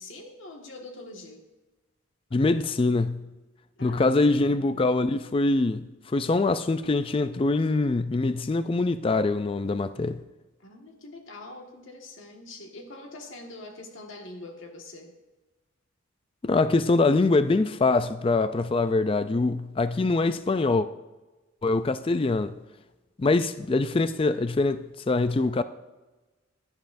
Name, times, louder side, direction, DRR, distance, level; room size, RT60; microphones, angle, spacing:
voice 1, 0.0-1.4 3.8-4.9 10.6-15.1, left 2 dB, 65° left, 1.7 m, -44 dB
voice 2, 2.3-3.3 3.8-5.8 6.1-10.2 16.4-20.9 21.6-22.5 23.2-25.6, left 3 dB, 25° left, 0.3 m, -24 dB
16.5 x 11.5 x 2.6 m
head